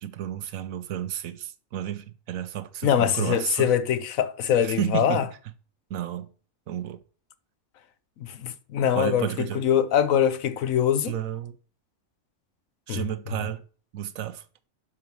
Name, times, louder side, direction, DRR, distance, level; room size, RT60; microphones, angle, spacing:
voice 1, 0.0-3.7 4.6-5.3 5.9-6.3 6.7-7.0 8.9-9.6 11.0-11.6 12.9-13.6 13.9-14.4, right 11 dB, 90° right, 1.2 m, -32 dB
voice 2, 2.8-5.2 8.2-11.1 12.9-13.0, left 9 dB, 80° left, 1.2 m, -23 dB
11.5 x 4.5 x 5.4 m
omnidirectional pair, 1.4 m